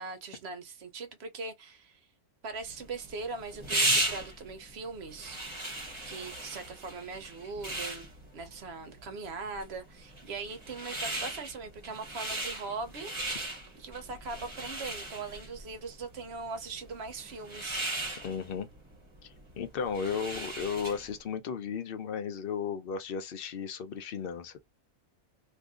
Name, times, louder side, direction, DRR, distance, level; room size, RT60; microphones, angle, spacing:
voice 1, 0.0-2.1 2.4-5.4 6.0-13.1 13.8-17.8, right 4 dB, 55° right, 0.8 m, -40 dB
sound 1, 2.6-21.2, right 2 dB, 25° right, 0.8 m, -37 dB
voice 2, 18.2-18.7 19.2-24.6, left 6 dB, 55° left, 0.6 m, -35 dB
2.7 x 2.5 x 3.5 m
omnidirectional pair, 1.6 m